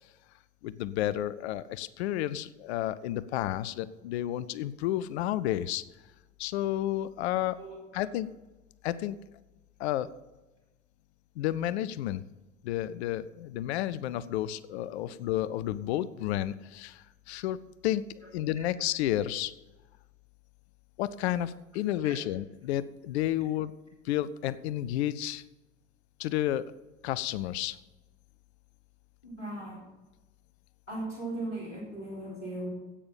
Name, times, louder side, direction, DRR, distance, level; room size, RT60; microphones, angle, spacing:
voice 1, 0.6-5.8 6.4-7.6 7.9-8.3 8.8-9.2 9.8-10.1 11.4-12.2 12.6-18.0 18.3-19.5 21.0-23.7 24.0-25.4 26.2-26.7 27.0-27.8, left 13 dB, 65° left, 17 dB, 0.6 m, -31 dB
voice 2, 29.2-29.8 30.9-32.7, right 1 dB, 90° left, -4 dB, 3.6 m, -38 dB
10.0 x 8.6 x 6.9 m, 1.1 s
figure-of-eight pair, 60°, 35 cm